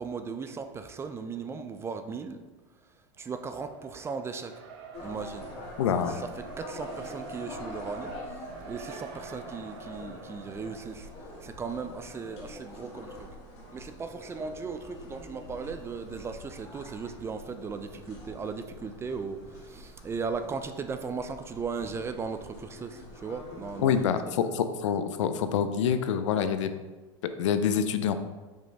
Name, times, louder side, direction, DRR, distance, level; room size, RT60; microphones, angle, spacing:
voice 1, 0.0-2.4 3.2-4.6 5.0-5.5 5.9-11.1 11.4-13.3 13.7-24.4, right 5 dB, 15° right, 9 dB, 0.4 m, -37 dB
Race car auto racing, 3.2-12.3, right 4 dB, 60° right, 0.8 m, -46 dB
sound 1, 4.9-24.1, left 1 dB, 40° left, 1.7 m, -46 dB
voice 2, 5.8-6.2 23.8-26.7 27.2-28.1, left 8 dB, 80° left, 10 dB, 0.5 m, -26 dB
5.3 x 5.3 x 3.3 m, 1.2 s
supercardioid pair, 125°, 15 cm